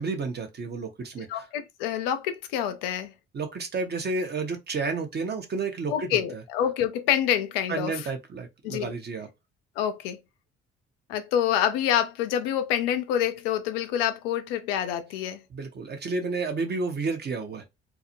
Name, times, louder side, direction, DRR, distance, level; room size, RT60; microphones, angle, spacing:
voice 1, 0.0-1.4 3.3-6.4 7.7-9.3 15.5-17.6, right 4 dB, 35° right, 0.8 m, -31 dB
voice 2, 1.3-3.1 5.9-8.0 8.6-8.9 9.8-10.2 11.1-15.4, left 10 dB, 70° left, 0.4 m, -27 dB
2.3 x 2.0 x 2.9 m
figure-of-eight pair, 50°, 30 cm